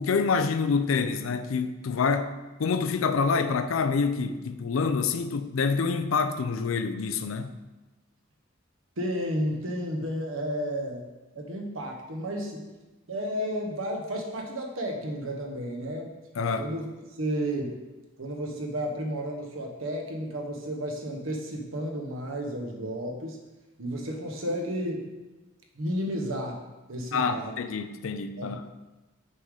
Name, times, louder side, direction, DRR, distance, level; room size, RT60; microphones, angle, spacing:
voice 1, 0.0-2.3 2.6-7.6 16.4-16.7 27.1-28.7, left 5 dB, 75° left, 0.5 m, -27 dB
voice 2, 9.0-11.1 11.3-12.7 13.1-16.1 16.6-16.9 17.2-17.7 18.2-23.4 23.8-25.1 25.7-26.6 26.9-27.5 28.4-28.6, equal, 75° right, 1.1 m, -32 dB
6.7 x 3.7 x 4.9 m
head